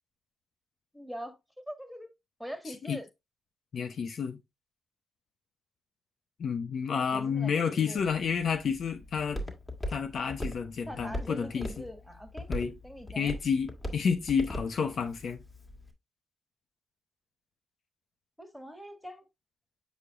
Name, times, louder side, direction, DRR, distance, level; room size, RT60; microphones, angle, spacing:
voice 1, 0.9-1.4 1.7-2.1 2.4-3.0 7.1-8.0 10.9-12.5 12.8-13.3 18.4-19.3, equal, ahead, 2.0 m, -42 dB
voice 2, 2.7-3.0 3.7-4.4 6.4-9.4 9.9-11.9 12.5-12.7 13.2-15.4, left 6 dB, 65° left, 0.8 m, -30 dB
Walk footsteps, 8.0-15.9, left 1 dB, 20° left, 2.1 m, -40 dB
8.2 x 5.0 x 2.5 m
supercardioid pair, 55°, 0 cm